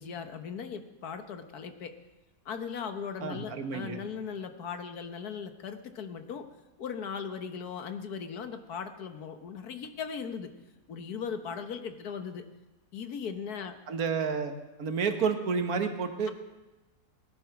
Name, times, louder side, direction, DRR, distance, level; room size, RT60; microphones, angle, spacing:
voice 1, 0.0-1.9 2.4-6.4 6.8-10.5 10.9-12.4 12.9-13.7, left 6 dB, 75° left, 8 dB, 1.7 m, -38 dB
voice 2, 3.2-4.0 13.9-14.5 14.8-16.3, right 5 dB, 65° right, 7 dB, 1.7 m, -30 dB
20.5 x 10.5 x 5.9 m, 1.1 s
omnidirectional pair, 1.7 m